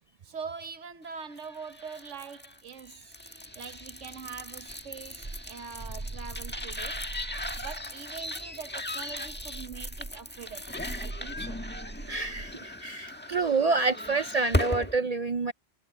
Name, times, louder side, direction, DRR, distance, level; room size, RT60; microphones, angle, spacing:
voice 1, 0.2-3.1 3.5-7.1 7.6-11.6, right 6 dB, 85° right, 1.4 m, -43 dB
sound 1, 1.3-15.0, left 1 dB, 10° left, 1.4 m, -37 dB
sound 2, 4.7-7.9 9.1-12.6, right 2 dB, 30° right, 1.4 m, -41 dB
voice 2, 12.1-15.5, right 3 dB, 55° right, 0.4 m, -28 dB
omnidirectional pair, 1.2 m